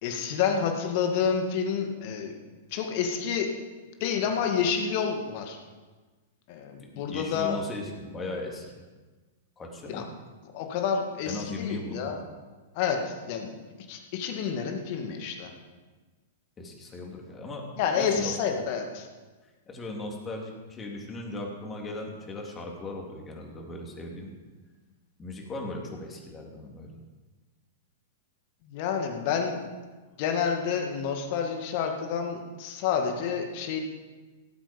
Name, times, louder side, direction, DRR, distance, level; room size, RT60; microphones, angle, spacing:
voice 1, 0.0-2.3 2.7-3.5 4.0-5.6 6.5-7.6 9.9-10.0 10.5-12.2 12.8-13.5 13.9-15.5 17.8-19.1 28.7-29.6 30.2-33.8, left 7 dB, 50° left, 4 dB, 2.2 m, -29 dB
voice 2, 6.8-8.8 9.6-10.1 11.3-12.2 16.6-17.7 18.0-18.3 19.7-24.3 25.2-26.9, left 2 dB, 20° left, 1 dB, 3.1 m, -37 dB
18.0 x 8.1 x 5.3 m, 1.3 s
figure-of-eight pair, 105°, 0 cm